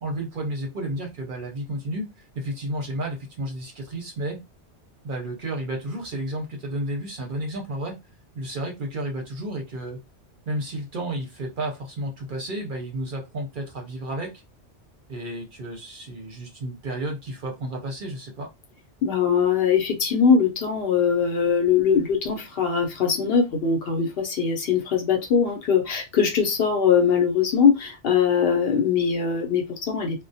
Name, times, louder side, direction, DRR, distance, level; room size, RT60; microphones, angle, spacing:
voice 1, 0.0-4.4 5.0-8.0 8.3-10.0 10.5-14.4 15.1-18.5, right 1 dB, 55° right, 0.7 m, -32 dB
voice 2, 19.0-30.2, left 6 dB, 60° left, 0.8 m, -21 dB
2.2 x 2.1 x 2.6 m
omnidirectional pair, 1.2 m